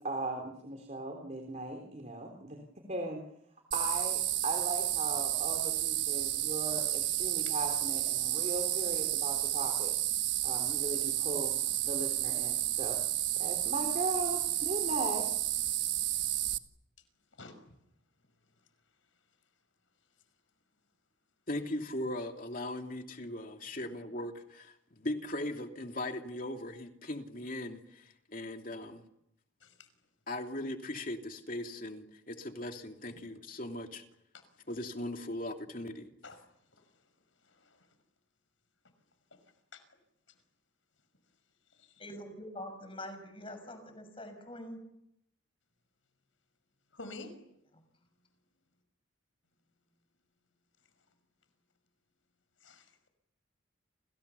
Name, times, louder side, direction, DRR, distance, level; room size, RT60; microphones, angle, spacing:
voice 1, 0.0-3.2 3.7-9.9 10.4-11.5 11.8-13.0 13.4-15.3, right 2 dB, 35° right, 4 dB, 3.4 m, -38 dB
sound 1, 3.7-16.6, right 14 dB, 70° right, 1.5 m, -31 dB
voice 2, 21.5-29.0 30.3-34.0 34.7-36.1, left 1 dB, 45° left, 4 dB, 2.9 m, -39 dB
voice 3, 37.4-37.9 39.7-39.8 41.8-41.9 46.9-47.3 52.6-52.9, left 3 dB, 80° left, 10 dB, 5.8 m, -48 dB
voice 4, 42.0-44.8, left 1 dB, 25° left, 8 dB, 6.5 m, -44 dB
30.0 x 28.0 x 7.1 m, 0.80 s
head